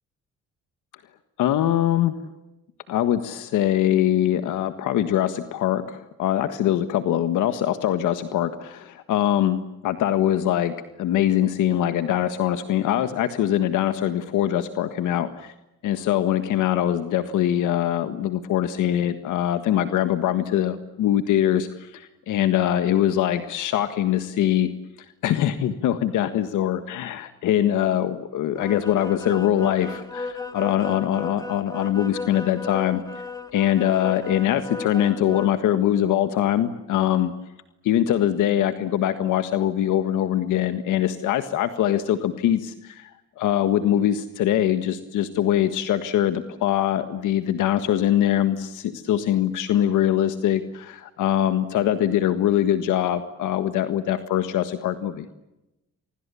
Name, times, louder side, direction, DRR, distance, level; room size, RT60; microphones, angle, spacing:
voice 1, 1.4-2.1 2.9-15.5 15.8-24.7 25.2-33.0 33.5-37.3 37.8-43.1 43.4-55.3, left 11 dB, 85° left, 10 dB, 1.6 m, -23 dB
sound 1, 28.6-35.5, left 3 dB, 10° left, 2.3 m, -35 dB
30.0 x 25.0 x 7.0 m, 0.94 s
cardioid pair, 90°, 30 cm